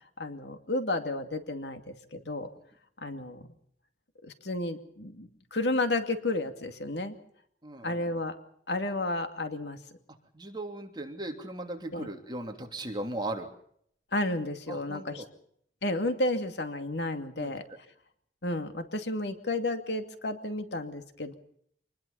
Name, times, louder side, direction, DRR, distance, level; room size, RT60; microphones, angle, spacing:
voice 1, 0.2-2.5 3.0-3.5 4.2-7.1 7.8-8.3 8.7-9.8 11.9-12.1 14.1-15.2 15.8-17.6 18.4-21.3, left 2 dB, 70° left, 7 dB, 2.5 m, -32 dB
voice 2, 7.6-8.1 10.3-13.5 14.7-15.2 17.4-17.5, right 1 dB, 25° right, 3 dB, 3.2 m, -37 dB
26.5 x 20.5 x 5.7 m, 0.67 s
head